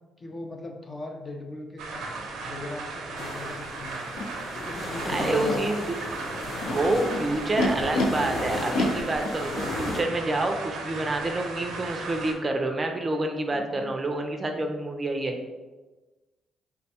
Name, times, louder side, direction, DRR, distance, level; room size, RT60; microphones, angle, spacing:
voice 1, 0.2-2.1 2.4-4.0 4.6-5.7 13.5-14.0 14.3-14.6, left 2 dB, 35° left, 2 dB, 0.5 m, -39 dB
sound 1, 1.8-12.3, right 3 dB, 85° right, 0.6 m, -36 dB
sound 2, 3.2-10.0, left 1 dB, 70° left, 1.0 m, -35 dB
Animal, 4.2-4.3 5.0-5.6 6.4-8.1 8.7-10.0, left 3 dB, 85° left, 0.5 m, -30 dB
voice 2, 5.1-6.0 6.7-15.4, right 2 dB, 30° right, 4 dB, 0.4 m, -28 dB
3.5 x 2.2 x 4.1 m, 1.2 s
cardioid pair, 90°, 0 cm